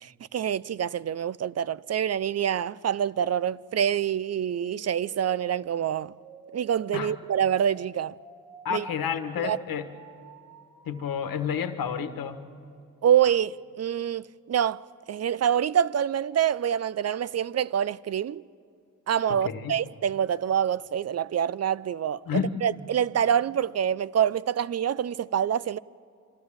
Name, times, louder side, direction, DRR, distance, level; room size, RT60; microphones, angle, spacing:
voice 1, 0.0-6.1 6.5-8.2 8.7-8.9 9.4-9.6 13.0-18.4 19.1-22.2 22.6-25.8, right 9 dB, 45° right, 0.5 m, -26 dB
sound 1, 4.7-11.7, right 6 dB, 80° right, 1.2 m, -50 dB
voice 2, 8.6-9.9 10.8-12.4 19.3-19.7 22.3-22.6, left 7 dB, 70° left, 1.3 m, -30 dB
25.0 x 13.5 x 8.7 m
cardioid pair, 70°, 36 cm